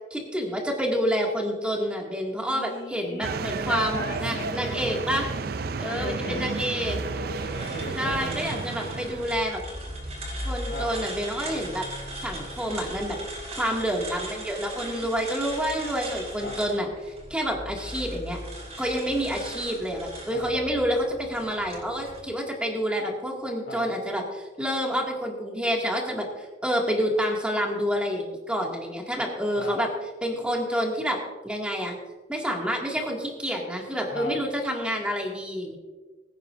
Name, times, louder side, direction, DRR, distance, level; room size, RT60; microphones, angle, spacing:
voice 1, 0.1-5.3 5.8-7.0 7.9-9.6 10.4-11.9 12.2-13.2 13.5-18.4 18.8-29.9 30.2-31.2 31.4-32.0 32.3-35.8, equal, 5° right, -1 dB, 2.2 m, -28 dB
voice 2, 2.5-3.3 3.6-4.9 5.9-6.5 7.0-8.2 10.7-10.9 16.4-16.6 20.3-20.5 23.7-23.8 29.6-29.8 34.1-34.3, left 1 dB, 85° left, -1 dB, 3.2 m, -36 dB
sound 1, 3.2-9.4, right 4 dB, 60° right, 0.5 m, -32 dB
sound 2, 7.3-22.2, right 1 dB, 40° right, 4.2 m, -38 dB
22.5 x 9.6 x 2.6 m, 1.3 s
head